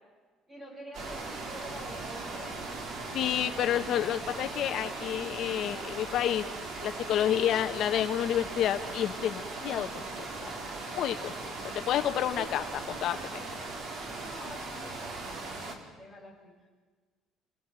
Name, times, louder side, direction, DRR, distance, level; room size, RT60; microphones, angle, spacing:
voice 1, 0.5-2.6 14.1-16.7, equal, 10° right, 0 dB, 7.9 m, -48 dB
sound 1, 0.9-15.8, right 3 dB, 45° right, 3.8 m, -39 dB
voice 2, 3.1-6.5 6.8-9.9 10.2-10.6 10.9-11.4 11.9-13.4, left 11 dB, 50° left, 8 dB, 1.0 m, -29 dB
27.5 x 18.5 x 9.0 m, 1.4 s
cardioid pair, 170°, 0 cm